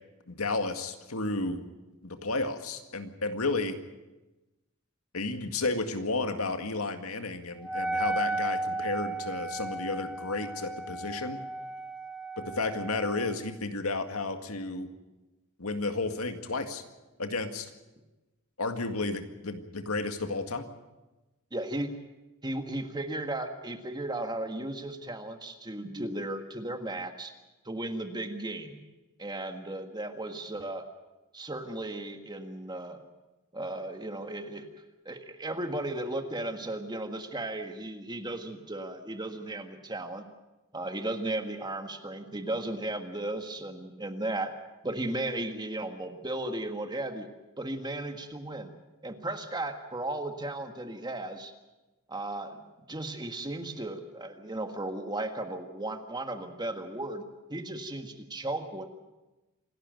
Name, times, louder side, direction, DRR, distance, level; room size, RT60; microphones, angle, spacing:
voice 1, 0.3-1.6 2.0-3.8 5.1-11.4 12.4-14.9 15.6-16.8 17.2-17.7 18.6-20.7, left 3 dB, 85° left, 7 dB, 2.0 m, -32 dB
Wind instrument woodwind instrument, 7.6-13.4, right 2 dB, 5° right, 1.5 m, -34 dB
voice 2, 21.5-21.9 22.4-27.3 27.7-28.8 29.2-30.9 31.3-33.0 33.5-34.7 35.1-40.3 40.7-44.5 44.8-47.3 47.6-48.7 49.0-51.5 52.1-58.8, right 1 dB, 20° right, 6 dB, 1.6 m, -35 dB
26.5 x 12.0 x 9.2 m, 1.1 s
head